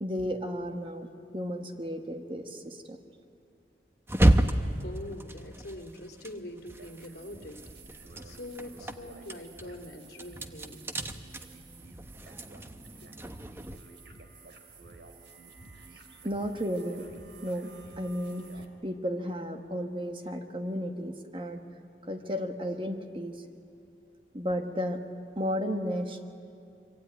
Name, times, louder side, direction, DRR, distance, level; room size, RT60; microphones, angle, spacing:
voice 1, 0.0-1.1 1.3-3.0 16.2-17.0 17.4-17.7 18.0-21.6 22.0-23.4 24.3-25.0 25.4-26.2, equal, 30° right, 5 dB, 1.4 m, -33 dB
sound 1, 4.1-7.1 7.4-13.8, right 1 dB, 15° right, 0.8 m, -30 dB
voice 2, 4.8-7.6 8.2-10.8, left 1 dB, 65° left, 3 dB, 2.9 m, -43 dB
sound 2, 6.7-18.6, right 3 dB, 85° right, 2.8 m, -51 dB
25.0 x 24.5 x 9.3 m, 2.6 s
head